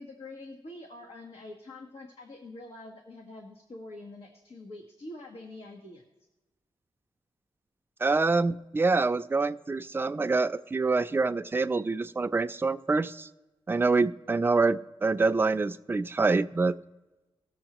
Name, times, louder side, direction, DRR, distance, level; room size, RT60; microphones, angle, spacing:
voice 1, 0.0-6.0, left 2 dB, 80° left, 0 dB, 1.4 m, -45 dB
voice 2, 8.0-13.3 13.7-16.7, right 3 dB, 20° right, 10 dB, 0.4 m, -26 dB
19.0 x 7.1 x 3.0 m, 1.1 s
wide cardioid pair, 135°, 10 cm